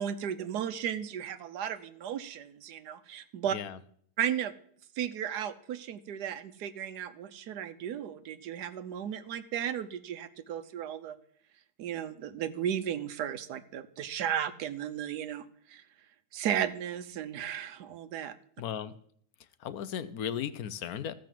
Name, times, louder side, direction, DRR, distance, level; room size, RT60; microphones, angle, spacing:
voice 1, 0.0-3.6 4.2-4.5 5.0-11.2 11.8-15.8 16.3-18.3, right 9 dB, 90° right, 13 dB, 1.3 m, -35 dB
voice 2, 18.6-18.9 19.6-21.1, left 8 dB, 70° left, 14 dB, 1.1 m, -36 dB
14.5 x 5.1 x 7.4 m, 0.64 s
omnidirectional pair, 1.7 m